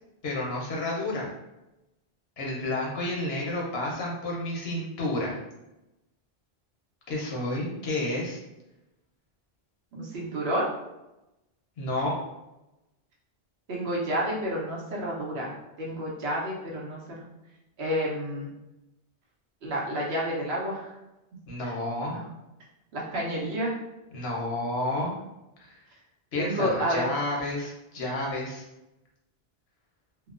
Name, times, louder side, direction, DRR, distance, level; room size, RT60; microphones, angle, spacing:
voice 1, 0.2-1.3 2.4-5.4 7.1-8.4 11.8-12.1 21.5-22.1 24.1-25.1 25.6-25.8 26.3-28.6, left 1 dB, 80° left, -3 dB, 1.0 m, -30 dB
voice 2, 9.9-10.6 13.7-15.5 15.8-17.0 17.8-18.5 19.6-20.9 22.1-22.2 22.9-23.7 26.4-27.1, equal, 90° right, -3 dB, 1.0 m, -29 dB
2.9 x 2.0 x 2.4 m, 0.95 s
omnidirectional pair, 1.0 m